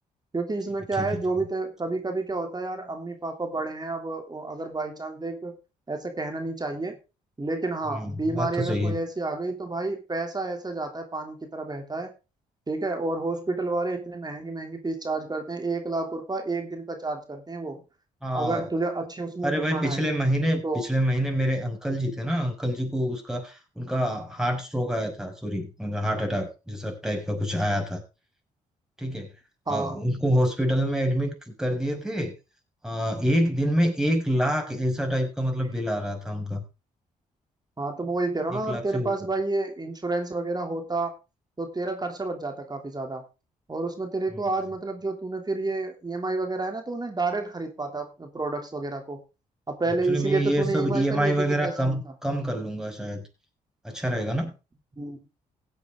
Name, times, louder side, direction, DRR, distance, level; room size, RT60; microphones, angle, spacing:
voice 1, 0.3-5.6 5.9-7.0 7.4-12.1 12.7-17.8 18.3-20.0 20.6-20.9 29.7-30.0 37.8-41.1 41.6-43.2 43.7-49.2 49.7-52.1 55.0-55.2, right 3 dB, 25° right, 4 dB, 3.0 m, -30 dB
voice 2, 7.9-9.0 18.2-18.6 19.4-28.0 29.0-29.3 29.7-32.3 32.8-36.6 38.5-39.1 44.3-44.5 50.1-53.2 53.8-54.5, equal, 5° right, 2 dB, 5.8 m, -27 dB
16.5 x 8.6 x 3.7 m, 0.29 s
supercardioid pair, 60°, 16 cm